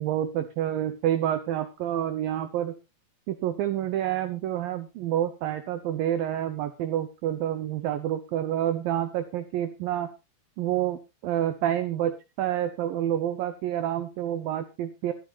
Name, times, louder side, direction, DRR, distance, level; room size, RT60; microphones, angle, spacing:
voice 1, 0.0-2.7 3.3-10.1 10.6-15.1, right 11 dB, 80° right, 9 dB, 2.1 m, -28 dB
24.0 x 9.0 x 2.4 m, 0.27 s
omnidirectional pair, 5.2 m